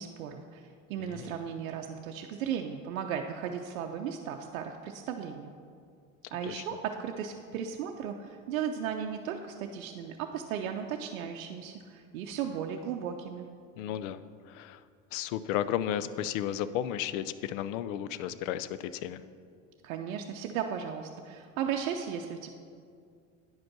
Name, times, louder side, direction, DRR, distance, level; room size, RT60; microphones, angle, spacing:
voice 1, 0.0-5.5 6.3-13.5 19.8-22.5, right 8 dB, 80° right, 3 dB, 0.6 m, -36 dB
voice 2, 1.0-1.3 6.4-6.6 13.8-14.2 14.5-14.8 15.1-19.2, left 11 dB, 70° left, 14 dB, 0.5 m, -33 dB
9.3 x 5.1 x 6.0 m, 2.3 s
hypercardioid pair, 90°, 40 cm